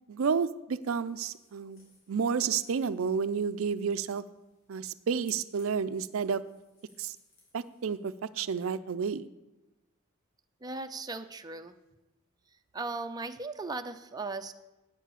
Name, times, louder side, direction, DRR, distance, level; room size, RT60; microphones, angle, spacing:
voice 1, 0.1-4.2 4.7-6.4 7.0-7.1 7.5-9.3, right 6 dB, 75° right, 14 dB, 0.4 m, -31 dB
sound 1, 0.8-8.3, left 2 dB, 70° left, 4.8 m, -63 dB
voice 2, 10.6-11.8 12.7-14.5, right 3 dB, 20° right, 7 dB, 0.5 m, -37 dB
9.1 x 7.4 x 8.3 m, 1.0 s
head